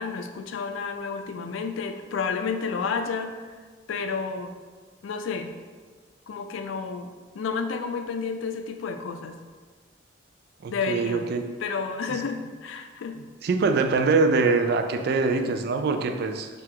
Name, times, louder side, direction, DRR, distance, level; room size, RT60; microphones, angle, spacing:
voice 1, 0.0-3.3 3.9-4.5 5.0-5.5 6.3-9.3 10.7-11.3 11.6-13.2, left 5 dB, 90° left, 7 dB, 0.4 m, -31 dB
voice 2, 10.6-11.5 12.1-12.2 13.4-16.5, right 4 dB, 55° right, 7 dB, 0.3 m, -23 dB
4.5 x 2.4 x 3.7 m, 1.5 s
head